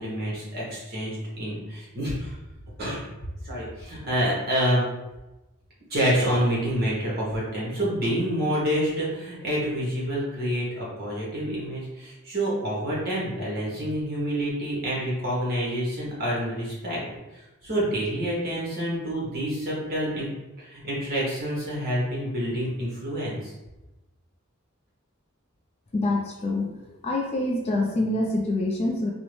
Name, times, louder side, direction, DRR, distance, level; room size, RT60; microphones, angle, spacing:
voice 1, 0.0-2.3 2.8-3.0 3.4-4.8 5.9-17.0 17.3-20.3 20.6-23.5, equal, 45° right, -5 dB, 0.9 m, -27 dB
voice 2, 25.9-26.7 27.0-29.1, left 2 dB, 30° left, 0 dB, 0.3 m, -25 dB
2.6 x 2.0 x 3.0 m, 1.0 s
head